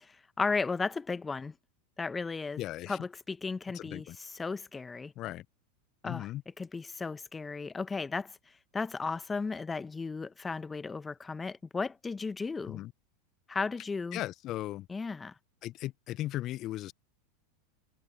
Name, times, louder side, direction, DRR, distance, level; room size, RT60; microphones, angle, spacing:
voice 1, 0.4-1.5 2.0-2.6 2.9-3.0 3.3-5.1 6.0-6.3 6.6-8.3 8.7-12.8 13.5-14.2 14.9-15.3, left 4 dB, 15° left, 1.1 m, -35 dB
voice 2, 2.6-3.0 3.7-4.2 5.2-5.5 6.0-6.4 12.6-12.9 14.1-14.9 15.6-16.9, left 15 dB, 45° left, 0.7 m, -37 dB
hypercardioid pair, 90°, 0 cm